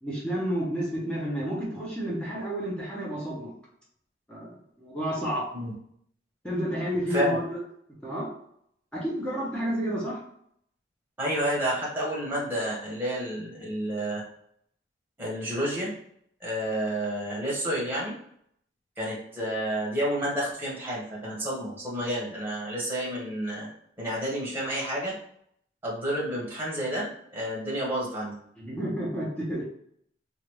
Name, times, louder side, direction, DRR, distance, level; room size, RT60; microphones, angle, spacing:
voice 1, 0.0-3.5 4.3-5.5 6.4-7.6 8.0-8.3 8.9-10.2 28.6-29.6, equal, 5° left, -6 dB, 0.8 m, -30 dB
voice 2, 11.2-14.2 15.2-15.9 16.4-18.1 19.0-23.7 24.0-25.1 25.8-28.3, equal, 10° right, -5 dB, 1.2 m, -30 dB
3.3 x 2.5 x 3.0 m, 0.69 s
head